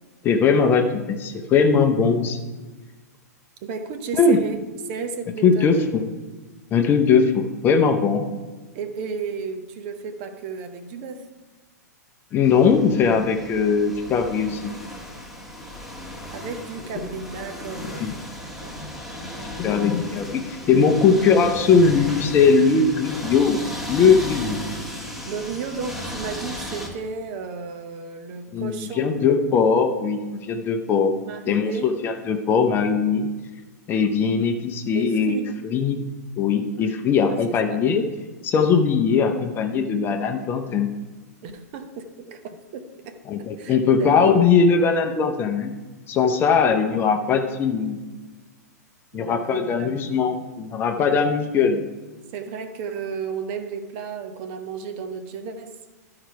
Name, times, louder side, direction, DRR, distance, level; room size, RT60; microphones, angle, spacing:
voice 1, 0.2-2.4 4.2-4.4 5.4-6.0 6.7-8.3 12.3-14.7 17.0-17.1 17.8-18.1 19.6-23.6 23.9-24.6 28.5-31.1 31.5-33.3 33.9-35.4 35.6-36.0 36.4-38.0 38.4-40.9 43.3-45.7 46.1-48.0 49.1-51.8, left 5 dB, 25° left, 5 dB, 0.7 m, -20 dB
voice 2, 3.6-4.6 4.9-5.8 8.7-11.3 16.3-18.1 18.4-18.8 25.3-29.1 31.2-31.9 34.9-35.5 37.3-37.4 37.7-37.8 41.4-44.3 49.1-50.4 52.3-55.8, right 5 dB, 40° right, 7 dB, 0.9 m, -33 dB
sound 1, 12.4-26.9, equal, ahead, 1.5 m, -35 dB
12.5 x 4.8 x 4.7 m, 1.3 s
figure-of-eight pair, 105°, 9 cm